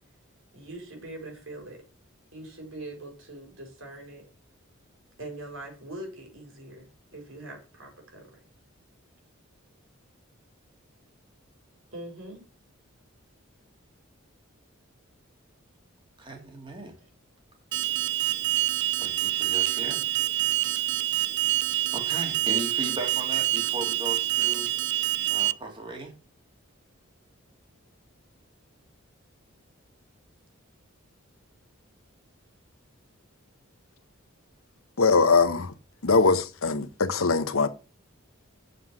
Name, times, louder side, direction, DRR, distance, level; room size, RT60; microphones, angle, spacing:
voice 1, 0.5-1.8 2.3-4.2 5.2-8.4 11.9-12.5 17.0-17.1, right 1 dB, 70° right, 4.5 m, -42 dB
voice 2, 16.2-17.0 19.0-20.0 20.6-20.9 21.9-24.7 25.3-26.1, right 2 dB, 25° right, 2.6 m, -37 dB
Alarm, 17.7-25.5, right 14 dB, 55° right, 0.4 m, -26 dB
voice 3, 35.0-35.7 36.0-37.7, left 4 dB, 85° left, 1.1 m, -22 dB
7.9 x 6.6 x 6.2 m
head